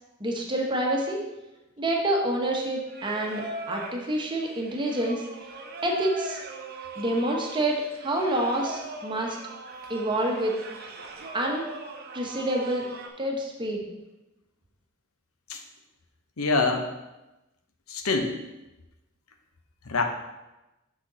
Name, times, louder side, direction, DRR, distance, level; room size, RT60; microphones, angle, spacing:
voice 1, 0.2-1.2 1.8-5.2 5.8-6.4 7.0-9.4 9.9-10.6 11.3-11.7 12.1-12.9 13.2-13.9, right 1 dB, 20° right, 0 dB, 0.9 m, -27 dB
Singing, 2.9-13.1, right 3 dB, 45° right, 0.7 m, -40 dB
voice 2, 16.4-16.9 17.9-18.3 19.9-20.0, left 3 dB, 80° left, 5 dB, 0.8 m, -24 dB
6.3 x 5.9 x 3.9 m, 1.0 s
head